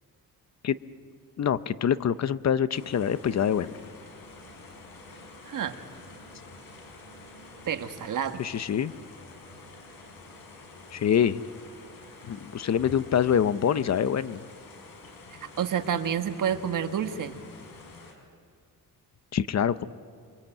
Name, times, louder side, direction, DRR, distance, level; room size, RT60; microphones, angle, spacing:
voice 1, 1.4-3.8 8.4-8.9 10.9-11.4 12.3-14.4 19.3-19.8, left 8 dB, 45° left, 14 dB, 0.7 m, -25 dB
sound 1, 2.7-18.1, left 3 dB, 80° left, 5.4 m, -48 dB
voice 2, 5.4-5.8 7.6-8.4 15.3-17.4, right 8 dB, 60° right, 8 dB, 1.5 m, -29 dB
27.5 x 24.0 x 8.9 m, 2.1 s
cardioid pair, 135°, 36 cm